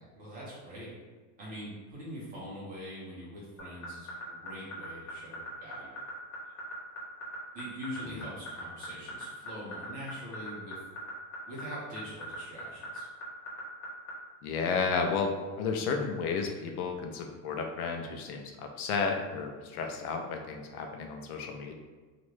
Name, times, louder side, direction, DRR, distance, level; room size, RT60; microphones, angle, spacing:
voice 1, 0.1-0.9 1.4-6.1 7.5-10.8 11.5-13.1, equal, 20° right, -7 dB, 0.6 m, -43 dB
sound 1, 3.6-14.1, left 2 dB, 45° left, 1.2 m, -39 dB
voice 2, 14.4-21.7, left 5 dB, 70° left, 3 dB, 0.6 m, -32 dB
3.0 x 2.5 x 3.2 m, 1.4 s
supercardioid pair, 170°, 46 cm